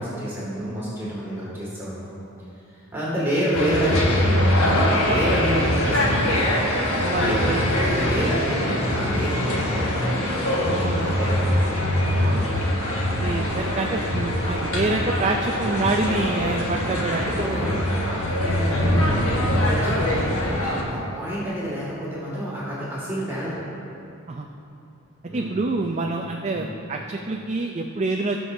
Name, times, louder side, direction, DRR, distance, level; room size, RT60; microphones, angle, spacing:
voice 1, 0.0-2.2 2.7-6.6 7.0-10.3 11.1-11.5 12.1-12.6 17.1-23.6 25.3-25.7 26.5-26.7, right 1 dB, 10° right, -8 dB, 2.0 m, -29 dB
sound 1, 3.5-20.8, left 1 dB, 75° left, 1.4 m, -23 dB
voice 2, 7.0-7.6 10.8-11.2 12.2-12.4 13.1-17.4 24.3-24.5 25.3-28.4, right 2 dB, 30° right, 2 dB, 0.4 m, -27 dB
18.5 x 6.1 x 2.7 m, 2.7 s
head